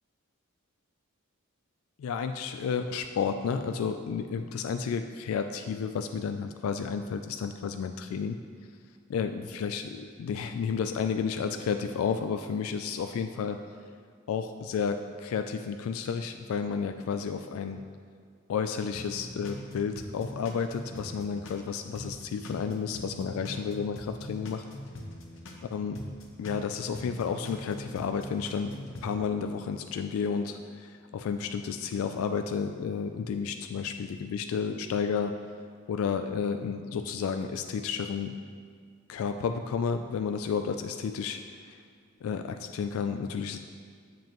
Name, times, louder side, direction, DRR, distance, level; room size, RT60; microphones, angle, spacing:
voice 1, 2.0-8.4 9.1-13.6 14.3-17.8 18.5-24.6 25.7-26.0 26.4-35.3 35.9-38.3 39.1-41.8 42.2-43.6, left 6 dB, 85° left, 7 dB, 0.3 m, -31 dB
sound 1, 18.9-21.6 21.9-25.6 25.9-29.1, left 1 dB, 65° left, 0.9 m, -42 dB
7.6 x 7.1 x 3.0 m, 2.1 s
head